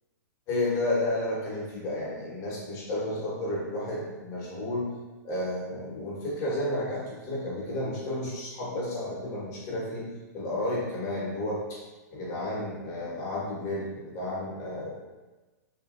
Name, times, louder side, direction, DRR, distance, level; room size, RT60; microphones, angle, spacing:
voice 1, 0.5-4.9 5.2-10.1 10.3-11.8 12.1-14.9, left 1 dB, 35° left, -6 dB, 1.2 m, -32 dB
2.7 x 2.7 x 2.5 m, 1.2 s
hypercardioid pair, 130°, 10 cm